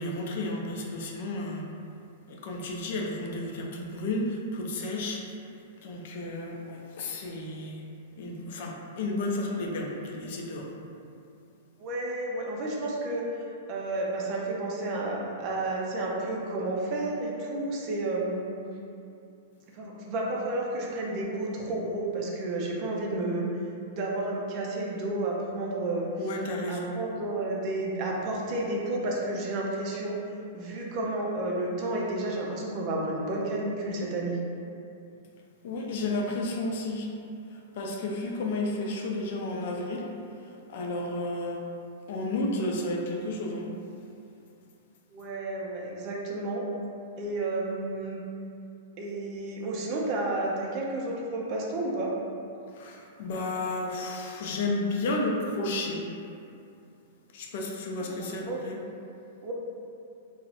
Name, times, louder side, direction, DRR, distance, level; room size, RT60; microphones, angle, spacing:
voice 1, 0.0-1.6 2.3-5.2 5.8-7.8 8.2-10.7 26.2-26.9 35.6-37.1 37.7-40.1 40.7-41.6 42.1-43.7 52.7-56.0 57.3-58.8, left 2 dB, 60° left, 0 dB, 0.3 m, -32 dB
voice 2, 11.8-18.5 19.7-23.4 23.8-26.3 26.7-30.2 30.5-34.4 45.1-46.6 47.2-48.2 49.0-52.1 58.2-58.6 59.4-59.5, right 2 dB, 45° right, -2 dB, 0.4 m, -31 dB
2.6 x 2.0 x 2.4 m, 2.6 s
hypercardioid pair, 120°, 0 cm